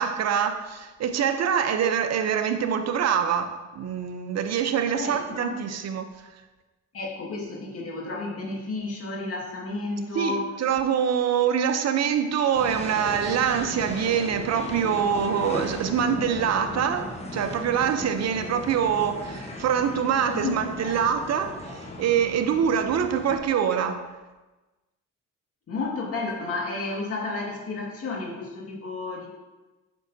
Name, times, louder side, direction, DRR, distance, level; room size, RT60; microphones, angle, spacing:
voice 1, 0.0-6.1 10.1-24.0, right 8 dB, 60° right, 0.8 m, -25 dB
voice 2, 4.9-5.6 6.9-10.5 20.3-20.5 20.8-21.0 22.0-22.1 25.7-29.3, left 3 dB, 50° left, 2.1 m, -32 dB
sound 1, 12.5-23.4, left 2 dB, 20° left, 1.1 m, -37 dB
8.2 x 6.1 x 2.8 m
cardioid pair, 90°, 30 cm